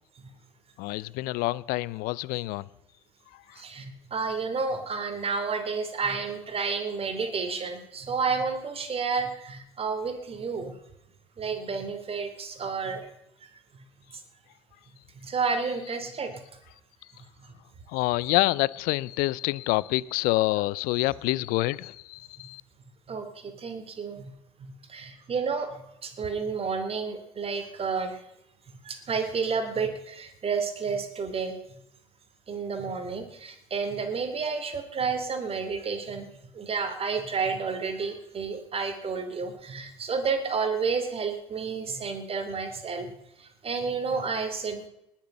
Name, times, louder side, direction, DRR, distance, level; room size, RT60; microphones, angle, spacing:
voice 1, 0.8-2.6 17.9-22.6, left 20 dB, 65° left, 0.5 m, -27 dB
voice 2, 3.6-10.7 11.4-13.1 15.1-16.4 23.1-24.3 24.6-28.2 28.8-31.6 32.5-36.3 36.5-43.1 43.4-44.9, right 5 dB, 35° right, 3.0 m, -31 dB
20.0 x 7.3 x 6.6 m
hypercardioid pair, 70°, 16 cm